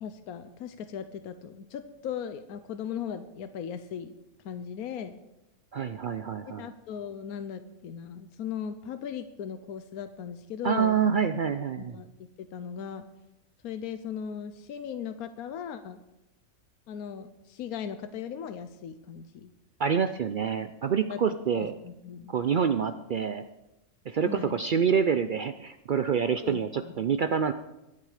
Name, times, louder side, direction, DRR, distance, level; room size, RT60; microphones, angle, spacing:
voice 1, 0.0-4.1 4.4-5.2 6.6-11.0 11.8-12.1 12.4-13.1 13.6-16.0 16.9-19.5 21.1-21.2 21.5-22.3 24.2-24.6 26.4-26.9, left 8 dB, 75° left, 10 dB, 1.3 m, -38 dB
voice 2, 5.7-6.7 10.6-12.0 19.8-21.7 22.3-23.4 24.1-27.5, right 7 dB, 90° right, 10 dB, 0.4 m, -27 dB
23.5 x 8.5 x 5.0 m, 0.94 s
omnidirectional pair, 1.6 m